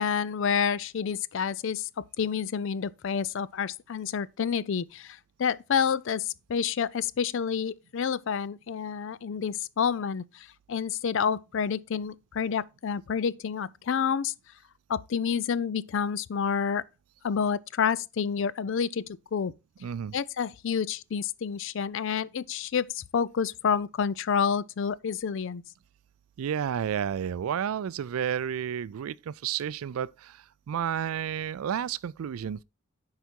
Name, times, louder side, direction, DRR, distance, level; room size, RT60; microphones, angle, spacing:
voice 1, 0.0-14.3 14.9-16.8 17.2-19.1 19.3-19.5 20.1-25.6, left 7 dB, 60° left, 0.4 m, -29 dB
voice 2, 19.8-20.2 26.4-32.6, right 8 dB, 80° right, 0.3 m, -31 dB
8.0 x 4.8 x 4.5 m
head